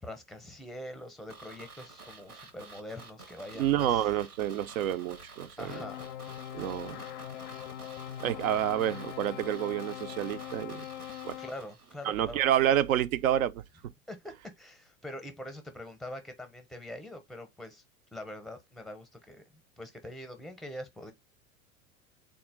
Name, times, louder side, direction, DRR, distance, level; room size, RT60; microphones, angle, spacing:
voice 1, 0.0-4.0 5.6-6.1 11.4-12.4 14.1-17.8 18.1-21.1, left 1 dB, ahead, 0.6 m, -44 dB
sound 1, 1.3-12.2 12.5-12.6, right 3 dB, 90° right, 1.1 m, -50 dB
voice 2, 3.6-5.8 6.5-7.0 8.2-10.9 11.2-11.4 12.0-13.6, right 11 dB, 70° right, 0.5 m, -29 dB
sound 2, 5.7-11.5, left 12 dB, 40° left, 0.4 m, -42 dB
3.6 x 2.4 x 3.5 m
figure-of-eight pair, 90°, 44 cm